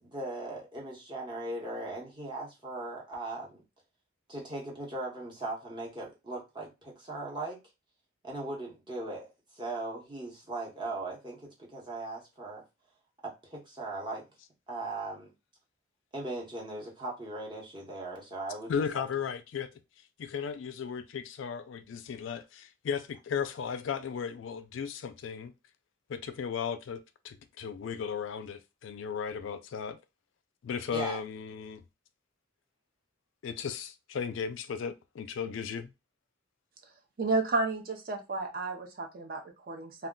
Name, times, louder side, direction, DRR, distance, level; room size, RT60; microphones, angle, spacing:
voice 1, 0.0-3.6 4.3-7.6 8.2-12.6 13.2-14.2 14.7-15.3 16.1-19.0 30.9-31.2, right 2 dB, 20° right, 0.9 m, -39 dB
voice 2, 18.7-19.7 20.2-25.5 26.1-30.0 30.6-31.8 33.4-35.9, left 6 dB, 60° left, 0.3 m, -35 dB
voice 3, 37.2-40.1, right 3 dB, 45° right, 0.5 m, -32 dB
2.3 x 2.2 x 3.6 m
head